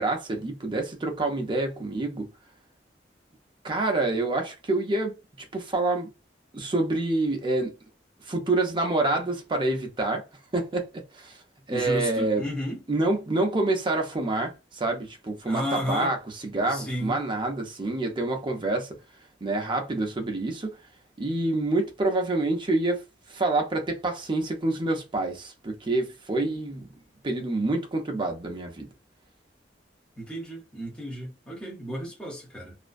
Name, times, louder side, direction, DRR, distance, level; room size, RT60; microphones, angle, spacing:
voice 1, 0.0-2.3 3.6-5.2 5.5-6.1 6.5-7.7 8.3-10.2 10.5-11.4 11.7-12.5 12.9-16.2 16.4-19.0 19.4-20.7 21.2-23.0 23.3-26.9 27.2-28.9, right 2 dB, 30° right, 0.6 m, -27 dB
voice 2, 11.7-12.9 15.4-16.1 16.6-17.2 30.2-32.8, equal, 5° left, 0.9 m, -33 dB
2.4 x 2.2 x 2.4 m
head